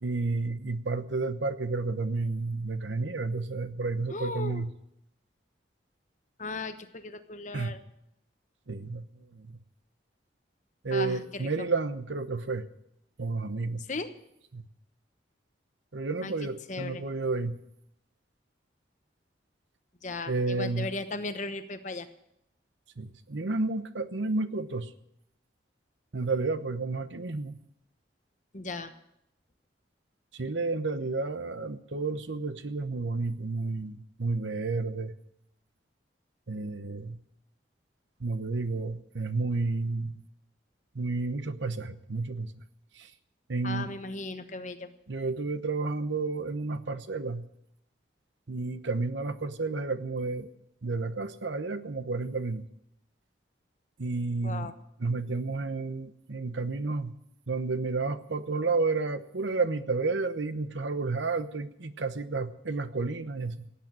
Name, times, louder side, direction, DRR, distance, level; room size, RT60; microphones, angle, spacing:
voice 1, 0.0-4.7 7.5-7.7 8.7-9.1 9.3-9.6 10.8-12.6 13.2-13.8 14.5-14.7 15.9-17.5 20.3-20.9 23.0-24.9 26.1-27.6 30.3-35.1 36.5-37.2 38.2-40.2 40.9-42.6 43.0-43.1 43.5-43.9 45.1-47.4 48.5-50.5 50.8-52.7 54.0-54.7 55.0-57.1 57.5-63.7, right 3 dB, 85° right, 12 dB, 1.0 m, -31 dB
voice 2, 4.1-4.6 6.4-7.8 10.9-11.5 13.9-14.1 16.2-16.3 16.7-17.0 20.0-22.1 28.5-28.9 43.6-44.9 54.4-54.7, left 2 dB, 40° left, 9 dB, 1.1 m, -36 dB
17.0 x 8.7 x 8.8 m, 0.80 s
head